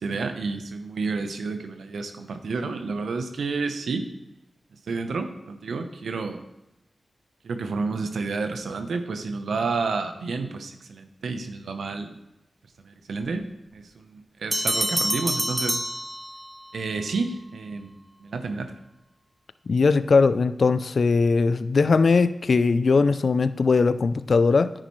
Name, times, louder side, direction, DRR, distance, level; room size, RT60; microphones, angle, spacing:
voice 1, 0.0-4.0 4.9-6.4 7.4-12.2 12.8-13.5 13.7-15.8 16.7-17.9 18.2-18.7, right 4 dB, 85° right, 7 dB, 0.9 m, -30 dB
sound 1, 14.5-16.7, equal, 5° right, 0.4 m, -27 dB
voice 2, 19.7-24.7, left 4 dB, 70° left, 13 dB, 0.4 m, -20 dB
10.0 x 8.9 x 3.2 m, 0.94 s
cardioid pair, 40°, 0 cm